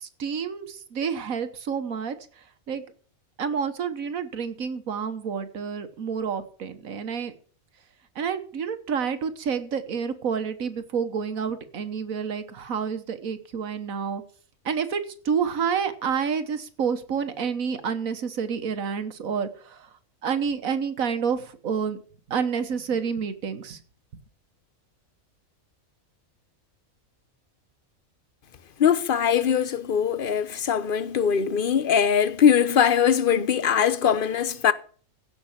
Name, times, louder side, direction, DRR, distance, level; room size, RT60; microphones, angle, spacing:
voice 1, 0.0-2.1 2.7-2.8 3.4-7.3 8.1-14.2 14.6-19.9 20.2-22.0 22.3-23.8, right 6 dB, 80° right, 1.6 m, -29 dB
voice 2, 28.8-34.7, left 8 dB, 45° left, 0.9 m, -21 dB
16.0 x 6.1 x 7.1 m
omnidirectional pair, 1.4 m